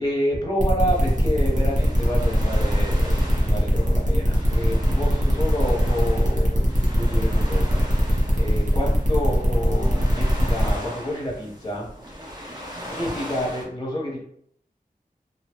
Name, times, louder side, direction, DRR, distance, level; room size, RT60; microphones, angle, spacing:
voice 1, 0.0-11.9 12.2-12.5 12.9-14.2, equal, 25° left, -3 dB, 1.1 m, -29 dB
sound 1, 0.6-10.7, equal, 55° right, 0.9 m, -23 dB
sound 2, 0.9-13.7, equal, 30° right, 1.0 m, -39 dB
2.7 x 2.3 x 3.0 m, 0.66 s
wide cardioid pair, 45°, 15 cm